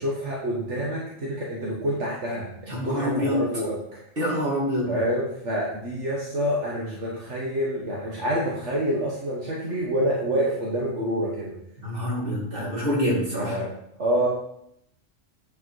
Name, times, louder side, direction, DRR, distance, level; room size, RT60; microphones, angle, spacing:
voice 1, 0.0-4.0 4.9-11.5 13.4-13.7 14.0-14.3, equal, 70° right, -5 dB, 1.8 m, -27 dB
voice 2, 2.7-3.4 4.2-4.9 11.8-13.6, equal, 45° right, -4 dB, 2.7 m, -26 dB
9.2 x 4.8 x 4.8 m, 0.75 s
omnidirectional pair, 1.3 m